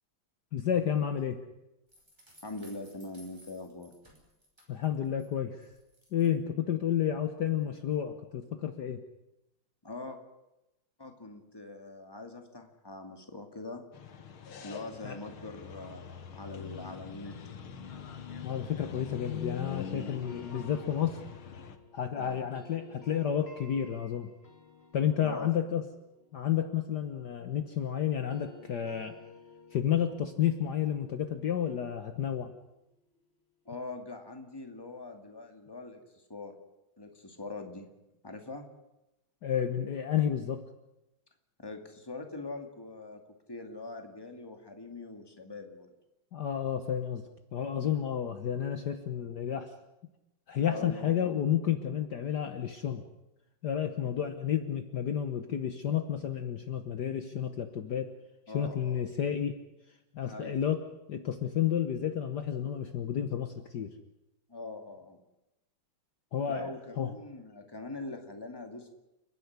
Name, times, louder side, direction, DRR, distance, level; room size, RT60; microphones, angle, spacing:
voice 1, 0.5-1.4 4.7-5.7 6.1-9.0 15.0-15.2 18.4-21.2 21.9-24.3 24.9-25.8 26.3-29.1 29.7-32.5 39.4-40.6 46.3-47.2 47.5-49.7 50.5-53.0 53.6-58.1 58.5-59.6 60.1-60.8 61.1-63.9 66.3-67.1, left 9 dB, 60° left, 8 dB, 1.6 m, -31 dB
sound 1, 1.9-5.3 5.6-6.3, equal, 10° right, 5.4 m, -59 dB
voice 2, 2.4-3.9 9.8-10.2 11.0-13.8 14.6-17.5 22.2-22.4 25.2-25.5 33.7-36.6 37.0-37.9 38.2-38.7 41.6-43.2 43.5-45.9 50.6-51.2 54.0-54.1 58.5-59.0 60.2-60.6 64.5-65.2 66.5-68.9, left 2 dB, 10° left, 4 dB, 2.3 m, -43 dB
sound 2, 13.9-21.8, left 7 dB, 85° left, 2.3 m, -43 dB
sound 3, 19.7-27.8 28.1-33.0, left 3 dB, 30° left, 2.9 m, -54 dB
30.0 x 10.5 x 9.7 m, 0.94 s
omnidirectional pair, 2.2 m